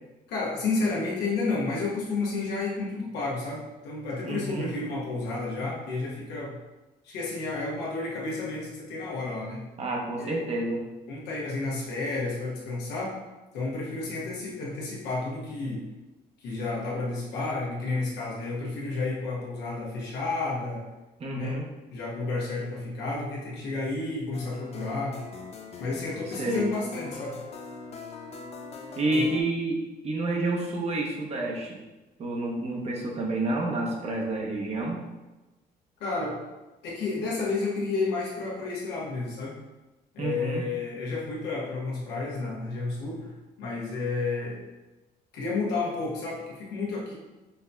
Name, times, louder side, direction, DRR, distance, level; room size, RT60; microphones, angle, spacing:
voice 1, 0.3-6.6 7.0-9.7 10.2-10.4 11.1-13.2 13.5-15.9 16.4-20.8 21.3-21.6 21.9-25.3 25.8-27.4 29.1-29.3 36.0-36.4 36.8-39.6 40.1-43.3 43.6-44.6 45.3-47.1, left 3 dB, 90° left, -5 dB, 1.1 m, -31 dB
voice 2, 4.2-4.7 9.8-10.8 21.2-21.7 26.4-26.7 29.0-29.8 30.0-31.8 32.2-35.0 40.2-40.6, right 2 dB, 40° right, 0 dB, 0.8 m, -29 dB
sound 1, 24.3-29.4, left 4 dB, 40° left, 0.4 m, -41 dB
5.4 x 2.7 x 2.2 m, 1.1 s
cardioid pair, 125°, 17 cm